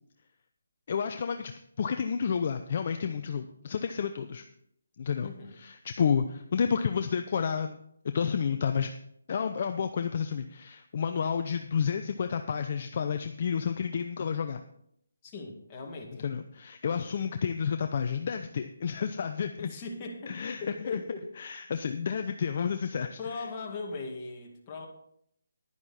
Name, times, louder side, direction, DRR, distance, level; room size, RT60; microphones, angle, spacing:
voice 1, 0.9-1.5 1.8-4.4 5.0-7.8 8.1-8.9 9.3-14.6 16.2-19.7 20.3-21.0 21.4-23.5, left 6 dB, 40° left, 7 dB, 0.6 m, -30 dB
voice 2, 5.2-5.6 15.2-16.3 19.6-21.3 23.2-24.9, left 3 dB, 20° left, -1 dB, 2.1 m, -39 dB
11.0 x 10.5 x 4.3 m, 0.72 s
hypercardioid pair, 160°, 0 cm